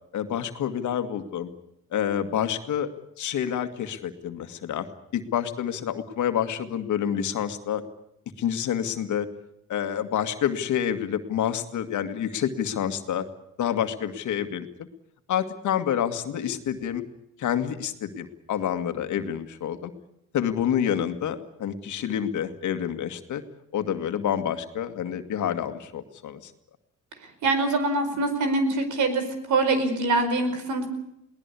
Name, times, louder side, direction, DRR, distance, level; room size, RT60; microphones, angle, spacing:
voice 1, 0.1-1.5 1.9-2.9 3.2-4.9 5.1-7.8 8.4-9.3 9.7-13.3 13.6-14.7 15.3-17.0 17.4-19.9 20.3-23.4 23.7-26.5, left 9 dB, 75° left, 8 dB, 2.1 m, -28 dB
voice 2, 27.4-30.9, right 2 dB, 75° right, 9 dB, 5.1 m, -24 dB
22.5 x 18.5 x 8.4 m, 0.81 s
cardioid pair, 90°, 30 cm